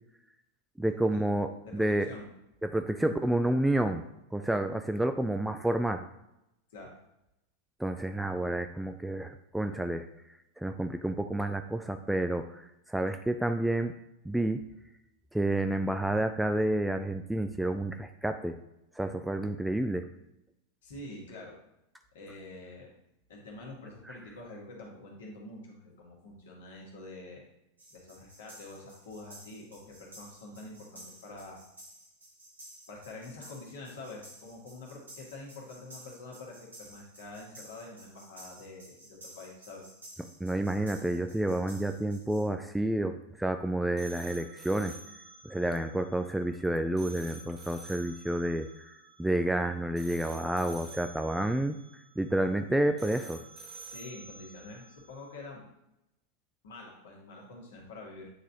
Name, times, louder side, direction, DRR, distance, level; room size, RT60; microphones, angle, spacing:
voice 1, 0.8-2.1 2.6-4.0 4.3-6.1 7.8-10.1 10.6-13.9 14.2-14.6 15.3-18.6 19.0-20.1 24.1-24.2 40.4-45.0 45.4-53.4, right 1 dB, 5° right, 7 dB, 0.3 m, -30 dB
voice 2, 1.6-2.3 6.7-6.9 20.8-21.6 22.1-22.9 23.3-27.5 27.9-31.6 32.9-39.9 53.8-55.7 56.6-58.3, left 2 dB, 60° left, -2 dB, 1.9 m, -46 dB
sound 1, 27.8-42.4, right 1 dB, 75° right, 1.9 m, -53 dB
sound 2, 44.0-55.3, right 3 dB, 25° right, 1.6 m, -50 dB
8.5 x 4.0 x 3.0 m, 0.86 s
figure-of-eight pair, 90°, 0 cm